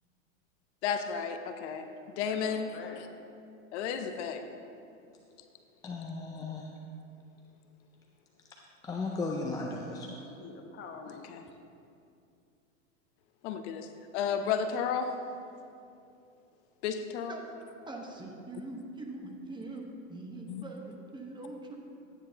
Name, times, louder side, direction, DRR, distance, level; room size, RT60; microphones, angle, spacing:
voice 1, 0.8-1.9 2.2-2.7 3.7-4.4 11.3-11.4 13.4-13.9 14.1-15.1 16.8-17.3 20.5-20.6, left 7 dB, 55° left, 7 dB, 0.8 m, -32 dB
voice 2, 2.2-3.1 10.3-11.5, left 5 dB, 30° left, 3 dB, 1.1 m, -46 dB
voice 3, 5.8-6.7 8.8-10.3, left 3 dB, 10° left, 0 dB, 0.3 m, -36 dB
voice 4, 17.9-21.8, right 2 dB, 10° right, 0 dB, 1.1 m, -43 dB
14.0 x 9.2 x 2.9 m, 2.5 s
hypercardioid pair, 115°, 41 cm